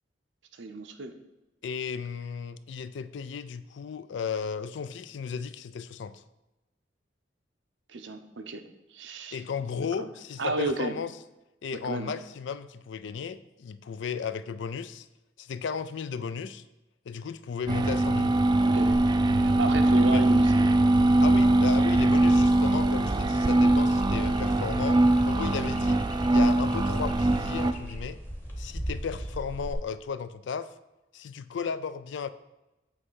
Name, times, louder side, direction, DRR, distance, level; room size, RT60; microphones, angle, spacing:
voice 1, 0.6-1.1 7.9-8.6 8.9-9.4 10.0-10.1 10.4-10.9 11.8-12.2 18.6-19.0 19.3-20.6, right 3 dB, 75° right, 8 dB, 0.7 m, -32 dB
voice 2, 1.6-6.2 9.3-11.1 11.6-15.1 15.4-16.6 17.1-18.4 20.1-20.2 21.2-26.0 26.3-28.2 28.6-30.7 31.1-32.3, left 6 dB, 75° left, 14 dB, 0.4 m, -35 dB
sound 1, 17.7-27.7, right 2 dB, 25° right, 0.3 m, -22 dB
sound 2, 22.7-29.7, equal, 10° left, 0.9 m, -39 dB
7.6 x 3.2 x 6.2 m, 0.99 s
head